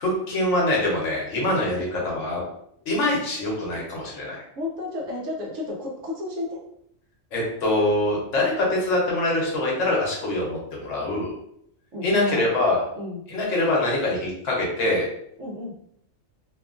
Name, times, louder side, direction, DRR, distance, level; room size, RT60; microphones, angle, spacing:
voice 1, 0.0-2.4 2.9-4.4 7.3-11.3 12.0-12.8 13.3-15.1, left 1 dB, 65° left, -3 dB, 1.1 m, -24 dB
voice 2, 4.6-6.6 11.9-12.5 13.0-13.2 15.4-15.7, left 2 dB, 70° right, -1 dB, 1.0 m, -31 dB
2.9 x 2.3 x 2.4 m, 0.73 s
omnidirectional pair, 1.4 m